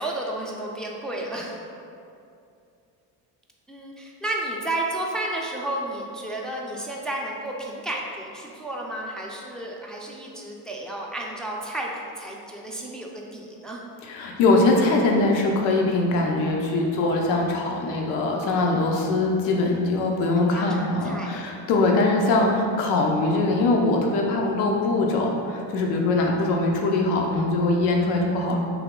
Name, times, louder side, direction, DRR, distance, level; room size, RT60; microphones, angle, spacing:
voice 1, 0.0-1.6 3.7-13.8 20.0-20.2 20.5-21.4, right 1 dB, ahead, -2 dB, 0.3 m, -32 dB
voice 2, 14.0-28.6, left 2 dB, 85° left, 0 dB, 0.6 m, -22 dB
3.4 x 2.9 x 3.6 m, 2.5 s
hypercardioid pair, 70°, 49 cm